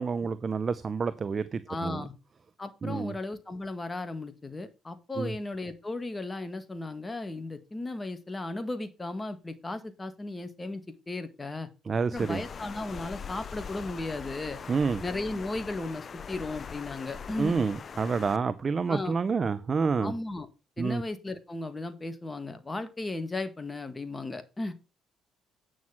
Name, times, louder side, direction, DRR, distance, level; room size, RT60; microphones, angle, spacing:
voice 1, 0.0-2.0 2.8-3.1 5.2-5.3 11.9-12.4 14.7-15.0 17.4-20.1 20.8-21.0, right 5 dB, 40° right, 0.7 m, -28 dB
voice 2, 1.7-2.1 2.6-10.8 11.1-11.7 12.1-14.6 15.0-17.5 18.9-19.1 20.0-20.5 20.8-24.7, left 2 dB, 20° left, 1.9 m, -35 dB
Water, 12.2-18.4, left 6 dB, 45° left, 0.7 m, -42 dB
9.3 x 6.3 x 5.9 m
cardioid pair, 85°, 0 cm